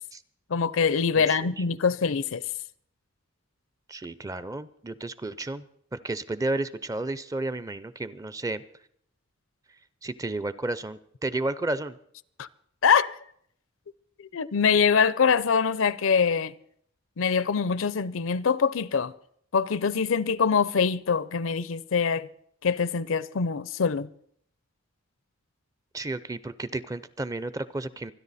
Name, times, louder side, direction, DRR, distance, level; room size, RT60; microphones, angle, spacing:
voice 1, 0.5-2.5 12.4-12.5 12.8-13.2 14.2-16.5 17.2-19.1 19.5-22.3 22.6-24.1, left 6 dB, 65° left, 0.5 m, -24 dB
voice 2, 1.2-1.6 3.9-5.7 5.9-8.6 10.0-12.0 25.9-28.1, right 2 dB, 15° right, 0.5 m, -32 dB
25.5 x 10.5 x 4.1 m
head